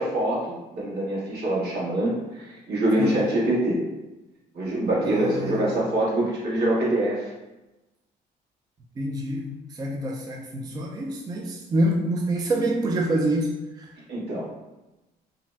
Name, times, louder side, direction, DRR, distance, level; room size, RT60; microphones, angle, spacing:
voice 1, 0.0-3.8 4.5-7.3 14.1-14.5, right 1 dB, 75° right, -6 dB, 1.2 m, -25 dB
voice 2, 3.0-3.3 5.0-5.8 9.0-13.9, right 1 dB, 25° right, 1 dB, 0.3 m, -27 dB
2.6 x 2.0 x 3.3 m, 1.0 s
cardioid pair, 110°, 17 cm